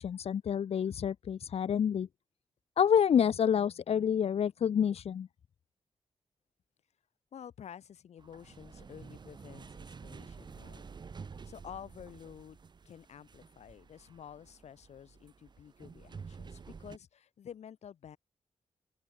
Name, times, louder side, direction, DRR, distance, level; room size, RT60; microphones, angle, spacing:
voice 1, 0.0-2.1 2.8-5.3, left 8 dB, 65° left, 1.7 m, -28 dB
voice 2, 7.3-12.6 12.9-18.2, left 9 dB, 85° left, 7.2 m, -50 dB
sound 1, 8.2-17.0, right 5 dB, 40° right, 7.9 m, -50 dB
open air
wide cardioid pair, 150°, 11 cm